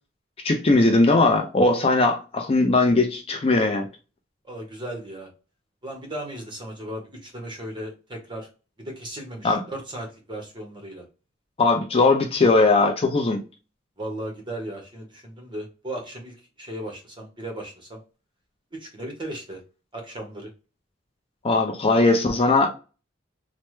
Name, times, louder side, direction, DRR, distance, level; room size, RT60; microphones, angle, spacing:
voice 1, 0.4-3.9 9.4-9.6 11.6-13.4 21.4-22.7, left 3 dB, 30° left, 0.4 m, -19 dB
voice 2, 4.4-5.3 5.8-8.5 8.8-11.0 14.0-18.0 18.7-19.6 19.9-20.5, right 1 dB, 25° right, 1.0 m, -36 dB
3.2 x 2.0 x 3.0 m
head